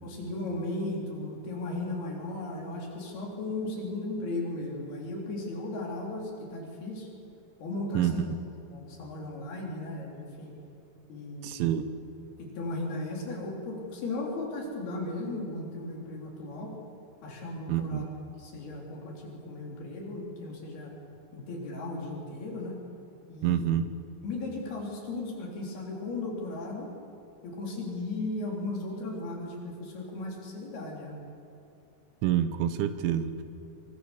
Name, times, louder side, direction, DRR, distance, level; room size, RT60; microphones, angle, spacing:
voice 1, 0.0-7.1 7.6-8.3 8.7-10.5 11.1-11.8 12.4-16.8 17.2-18.1 18.4-20.9 21.3-22.8 23.3-23.8 24.2-26.9 27.4-31.2, left 2 dB, 55° left, -1 dB, 5.5 m, -36 dB
voice 2, 11.4-11.8 17.7-18.1 23.4-23.9 32.2-33.4, right 10 dB, 80° right, 10 dB, 3.4 m, -27 dB
24.5 x 24.5 x 7.2 m, 2.7 s
omnidirectional pair, 5.7 m